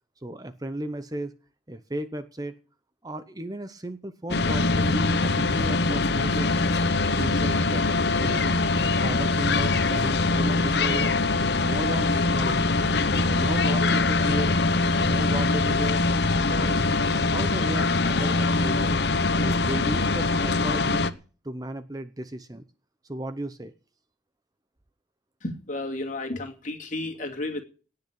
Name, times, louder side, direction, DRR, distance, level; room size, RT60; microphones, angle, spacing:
voice 1, 0.2-1.3 1.7-2.5 3.0-6.5 7.0-7.8 8.1-8.5 8.9-11.1 11.5-12.7 13.1-14.6 14.9-16.0 16.3-16.9 17.1-19.0 19.4-21.0 21.4-22.6 23.0-23.7, right 1 dB, 20° right, 11 dB, 0.7 m, -34 dB
sound 1, 4.3-21.1, left 3 dB, 60° left, 0.9 m, -23 dB
voice 2, 25.4-27.6, left 2 dB, 40° left, 2 dB, 2.7 m, -32 dB
18.5 x 6.7 x 8.7 m, 0.39 s
head